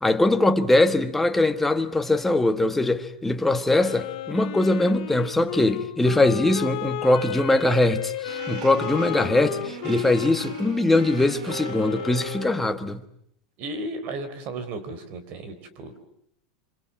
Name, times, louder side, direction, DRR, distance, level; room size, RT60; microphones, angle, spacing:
voice 1, 0.0-13.0, left 2 dB, 5° left, 1.3 m, -22 dB
Wind instrument woodwind instrument, 3.8-12.6, left 16 dB, 70° left, 2.0 m, -33 dB
sound 1, 8.3-12.8, right 8 dB, 75° right, 2.6 m, -38 dB
voice 2, 13.6-16.1, right 2 dB, 40° right, 3.8 m, -34 dB
25.0 x 25.0 x 8.7 m
supercardioid pair, 150°, 4 cm